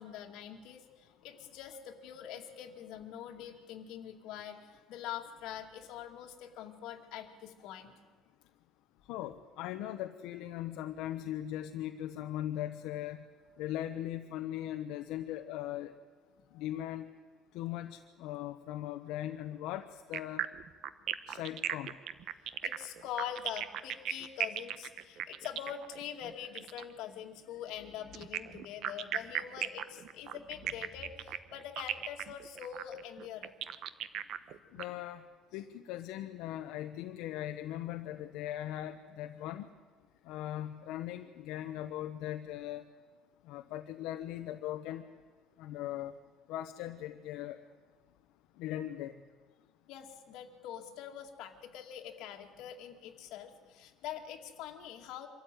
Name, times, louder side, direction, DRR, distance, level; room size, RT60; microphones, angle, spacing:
voice 1, 0.0-7.9 16.4-16.6 22.4-33.5 34.6-34.9 35.5-35.6 49.9-55.3, left 10 dB, 70° left, 3 dB, 2.4 m, -44 dB
voice 2, 9.1-13.2 13.6-15.9 16.5-17.1 17.5-20.4 21.3-21.9 34.7-35.2 35.5-39.7 40.3-42.9 43.5-45.0 45.6-46.1 46.5-47.6 48.6-49.1, left 12 dB, 85° left, 6 dB, 0.9 m, -39 dB
sound 1, 20.1-26.9 28.1-34.8, right 11 dB, 55° right, 0.9 m, -37 dB
25.0 x 13.5 x 9.2 m, 1.4 s
cardioid pair, 165°, 0 cm